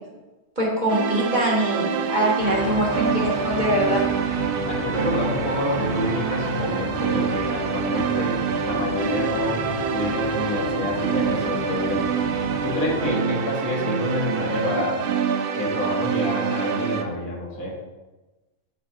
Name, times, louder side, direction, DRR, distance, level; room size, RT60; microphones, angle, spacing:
voice 1, 0.6-4.1, right 1 dB, 35° right, -4 dB, 1.6 m, -23 dB
sound 1, 0.9-17.0, right 7 dB, 70° right, 0.5 m, -26 dB
sound 2, 2.4-13.0, left 3 dB, 50° left, 0.9 m, -34 dB
voice 2, 4.7-8.4 8.7-15.0 15.5-17.7, left 1 dB, 80° left, -4 dB, 2.0 m, -28 dB
13.0 x 4.3 x 2.5 m, 1.1 s
omnidirectional pair, 1.5 m